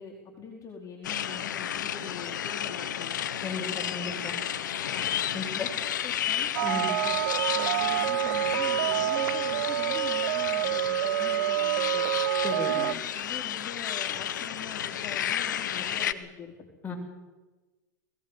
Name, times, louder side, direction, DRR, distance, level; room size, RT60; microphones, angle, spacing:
voice 1, 0.0-3.2 4.7-5.1 5.5-12.1 12.5-16.5, left 6 dB, 30° left, -3 dB, 4.5 m, -43 dB
sound 1, 1.0-16.1, left 10 dB, 80° left, 1.2 m, -32 dB
voice 2, 3.4-4.4 5.3-5.7 6.6-6.9 12.4-12.7 16.8-17.0, left 4 dB, 15° left, 0 dB, 6.6 m, -34 dB
sound 2, 6.6-12.9, right 14 dB, 70° right, 0.7 m, -27 dB
21.5 x 17.0 x 8.3 m, 1.2 s
hypercardioid pair, 100°, 10 cm